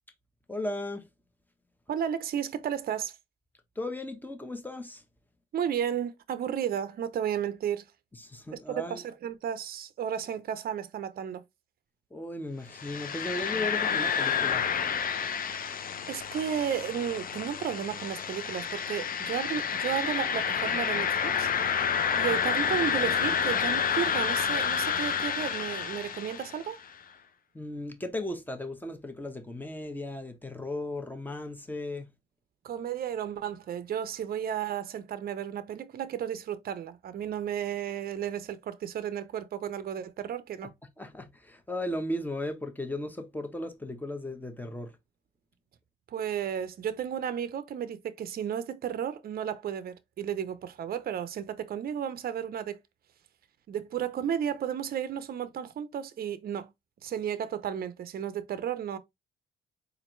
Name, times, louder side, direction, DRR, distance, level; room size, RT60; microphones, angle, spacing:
voice 1, 0.5-1.0 3.8-5.0 8.2-9.0 12.1-14.7 27.5-32.1 41.0-44.9, left 1 dB, 10° left, 0.9 m, -36 dB
voice 2, 1.9-3.1 5.5-7.8 8.5-11.4 16.1-21.5 22.2-26.8 32.6-40.7 46.1-52.8 53.7-56.7 57.0-59.0, right 9 dB, 50° right, 0.5 m, -33 dB
sound 1, 12.7-26.7, left 7 dB, 45° left, 0.7 m, -29 dB
4.2 x 2.6 x 3.0 m
cardioid pair, 90°, 20 cm